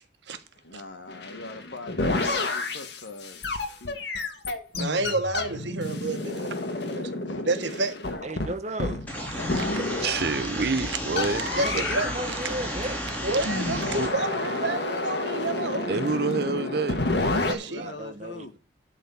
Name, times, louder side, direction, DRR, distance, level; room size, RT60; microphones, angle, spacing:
voice 1, 0.6-4.0 7.2-7.5 8.1-8.2 9.4-10.7 17.7-18.5, left 2 dB, 85° left, 1.6 m, -41 dB
sound 1, 1.1-10.3 11.2-12.2 13.4-17.5, left 2 dB, 65° left, 1.5 m, -30 dB
voice 2, 4.7-6.6 6.9-7.1 7.5-7.9 9.8-9.9 10.9-11.0 11.5-12.1 13.2-16.1 17.3-17.9, right 2 dB, 75° right, 1.3 m, -29 dB
voice 3, 8.2-9.1 11.5-13.0 17.8-18.6, right 1 dB, 35° right, 1.0 m, -35 dB
sound 2, 9.1-14.1, equal, 10° left, 2.9 m, -33 dB
voice 4, 10.0-11.5 14.0-14.1 15.9-17.0, right 4 dB, 55° right, 0.6 m, -27 dB
12.0 x 4.1 x 7.0 m
head